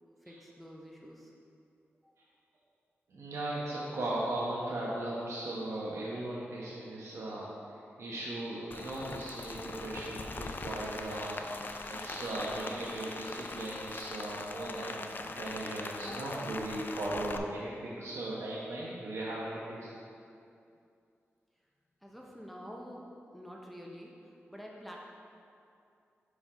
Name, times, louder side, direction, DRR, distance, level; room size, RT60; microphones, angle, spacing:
voice 1, 0.2-1.3 2.0-2.1 22.0-24.1 24.5-25.0, equal, ahead, -2 dB, 0.7 m, -47 dB
voice 2, 3.1-7.5 8.0-19.9, right 1 dB, 75° right, -6 dB, 1.0 m, -37 dB
Rain, 8.7-17.4, left 3 dB, 45° left, 0.4 m, -41 dB
5.2 x 5.2 x 4.9 m, 2.5 s
cardioid pair, 65°, 5 cm